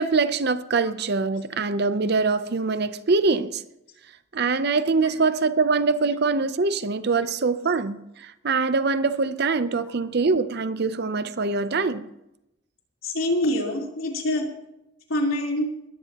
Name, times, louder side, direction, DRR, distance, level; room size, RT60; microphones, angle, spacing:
voice 1, 0.0-3.6 4.3-12.1, right 4 dB, 55° right, 13 dB, 0.7 m, -23 dB
voice 2, 13.0-14.4 15.1-15.7, left 1 dB, 85° left, -1 dB, 3.8 m, -25 dB
21.0 x 16.0 x 3.0 m, 0.88 s
head